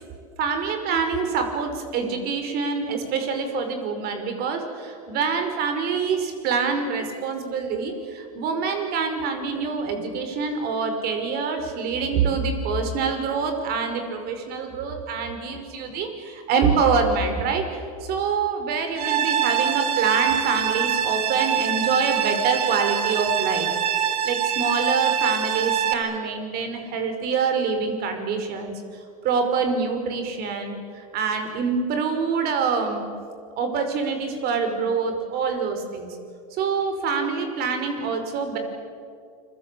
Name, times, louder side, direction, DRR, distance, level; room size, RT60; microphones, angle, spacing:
voice 1, 0.4-33.1 33.6-36.1 36.5-38.6, right 5 dB, 55° right, 6 dB, 5.4 m, -26 dB
sound 1, 19.0-25.9, right 9 dB, 90° right, 2.2 m, -24 dB
29.5 x 22.5 x 8.6 m, 2.3 s
supercardioid pair, 100°, 19 cm